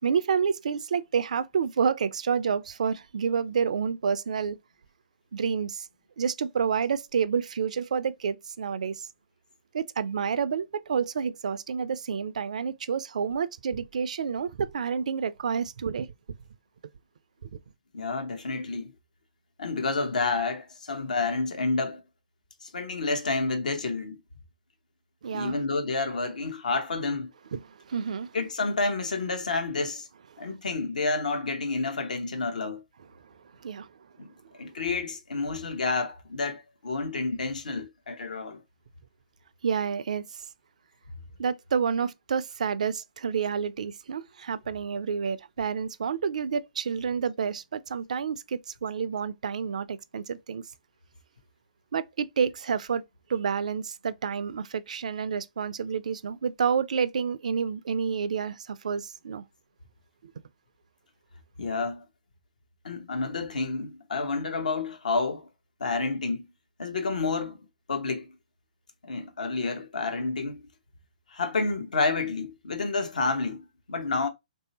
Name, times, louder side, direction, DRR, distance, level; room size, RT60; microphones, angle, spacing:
voice 1, 0.0-4.6 5.3-5.9 6.2-9.1 9.7-16.1 17.4-17.6 25.2-25.6 27.5-28.4 30.4-30.5 33.3-33.4 33.6-33.9 39.6-40.2 41.4-50.6 51.9-53.0 53.3-59.4 60.2-60.3, right 6 dB, 60° right, 0.4 m, -29 dB
voice 2, 17.9-18.9 19.6-22.0 22.6-24.2 25.3-27.3 28.3-30.1 30.4-32.8 34.2-34.3 34.6-38.6 61.6-62.0 62.8-65.5 65.8-66.5 66.8-67.6 67.9-68.3 69.0-70.7 71.3-74.3, left 3 dB, 70° left, 0.9 m, -29 dB
3.2 x 2.7 x 2.8 m
figure-of-eight pair, 130°, 4 cm